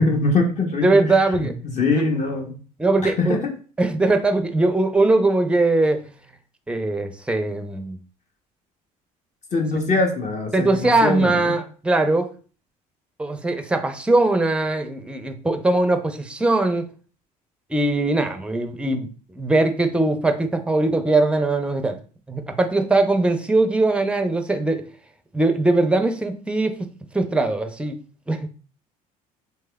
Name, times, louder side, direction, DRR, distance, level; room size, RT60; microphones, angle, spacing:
voice 1, 0.0-2.5 3.0-3.5 9.5-11.5, left 3 dB, 40° left, 1 dB, 0.8 m, -23 dB
voice 2, 0.8-1.5 2.0-2.1 2.8-3.4 3.8-6.0 6.7-8.0 10.5-12.3 13.2-16.9 17.7-22.0 22.3-24.9 25.3-26.7 27.1-28.0 28.3-28.5, right 2 dB, 5° right, 8 dB, 0.5 m, -21 dB
3.2 x 3.2 x 2.2 m, 0.38 s
hypercardioid pair, 70°, 19 cm